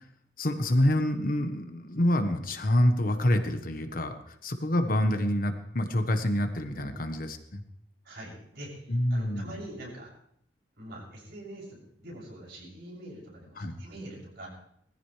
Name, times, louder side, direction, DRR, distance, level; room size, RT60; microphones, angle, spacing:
voice 1, 0.4-7.6 8.9-9.6 13.6-13.7, left 1 dB, 55° left, 6 dB, 1.4 m, -27 dB
voice 2, 6.7-7.0 8.0-10.1 10.8-14.5, right 1 dB, 65° right, -4 dB, 7.2 m, -44 dB
20.5 x 15.0 x 3.4 m, 0.70 s
head